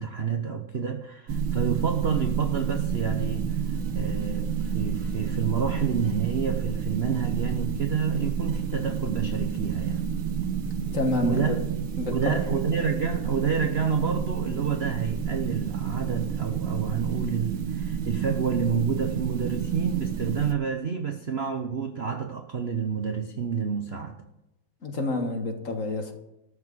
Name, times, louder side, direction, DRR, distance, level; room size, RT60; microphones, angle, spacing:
voice 1, 0.0-10.0 11.2-11.6 12.1-24.2, right 6 dB, 55° right, 0.7 m, -29 dB
sound 1, 1.3-20.5, right 7 dB, 80° right, 2.0 m, -30 dB
voice 2, 10.9-11.6 12.0-12.2 24.8-26.1, left 2 dB, 40° left, 1.6 m, -28 dB
13.5 x 6.1 x 9.2 m
omnidirectional pair, 2.4 m